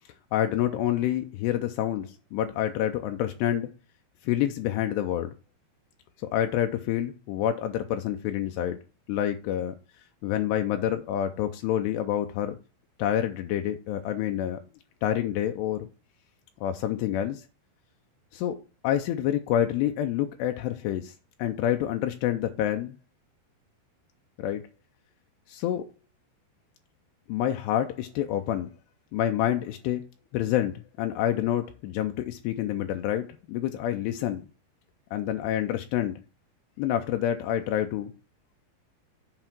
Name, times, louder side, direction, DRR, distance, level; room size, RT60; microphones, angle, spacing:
voice 1, 0.3-3.7 4.2-5.3 6.3-8.8 9.1-9.8 10.2-12.6 13.0-14.6 15.0-15.9 16.6-17.4 18.3-18.6 18.8-21.1 21.4-23.0 24.4-24.6 25.5-25.8 27.3-28.7 29.1-30.0 30.3-34.4 35.1-36.2 36.8-38.1, left 11 dB, 85° left, 2.7 m, -27 dB
7.8 x 4.6 x 6.0 m
omnidirectional pair, 4.9 m